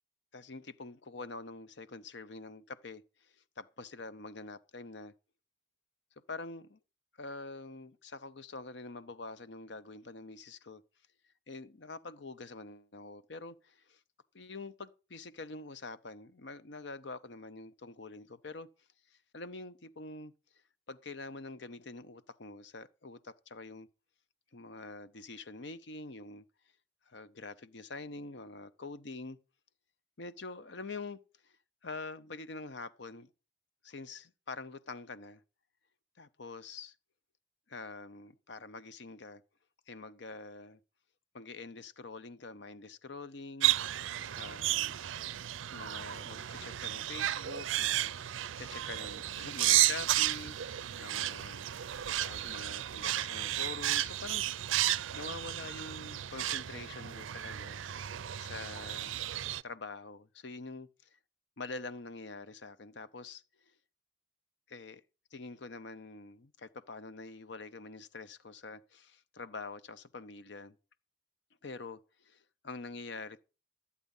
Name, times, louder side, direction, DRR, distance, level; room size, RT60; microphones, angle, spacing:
voice 1, 0.3-5.1 6.3-6.8 7.2-10.8 11.5-14.0 14.3-18.7 19.1-20.3 20.9-23.9 24.5-26.4 27.1-29.4 30.2-31.6 31.8-33.3 33.8-35.4 36.2-36.9 37.7-39.4 39.9-40.8 41.3-43.8 44.4-44.9 45.7-51.7 52.2-54.4 55.1-57.8 58.4-59.2 59.6-61.2 61.6-63.4 64.7-65.0 65.3-70.8 71.6-73.4, left 3 dB, 65° left, 0.7 m, -45 dB
sound 1, 43.6-59.6, right 13 dB, 85° right, 0.5 m, -33 dB
13.0 x 8.4 x 5.4 m
head